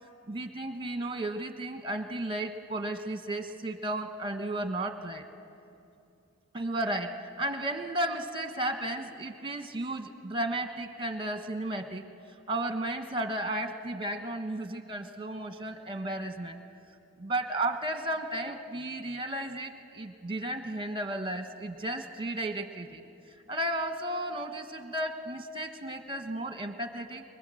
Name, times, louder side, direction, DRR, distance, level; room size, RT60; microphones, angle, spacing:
voice 1, 0.3-5.2 6.5-12.0 12.5-16.6 17.2-23.0 23.5-27.2, right 1 dB, 25° right, 7 dB, 1.2 m, -34 dB
24.5 x 22.0 x 7.8 m, 2.6 s
head